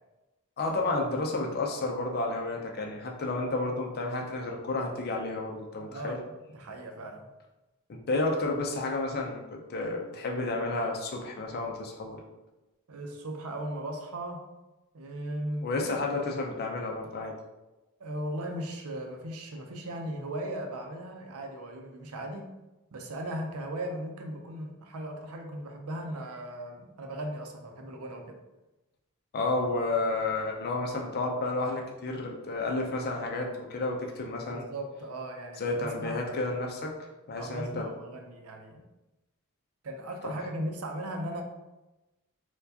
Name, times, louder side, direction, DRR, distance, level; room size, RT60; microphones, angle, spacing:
voice 1, 0.6-6.2 7.9-12.2 15.6-17.3 29.3-34.7 35.6-36.9 37.3-37.8, left 2 dB, 45° left, 1 dB, 0.5 m, -31 dB
voice 2, 5.8-7.3 12.9-14.5 14.9-16.1 18.0-22.6 22.9-28.4 34.5-36.3 37.4-38.8 39.8-41.4, right 1 dB, 75° right, 3 dB, 0.5 m, -37 dB
4.4 x 2.3 x 2.7 m, 1.1 s
head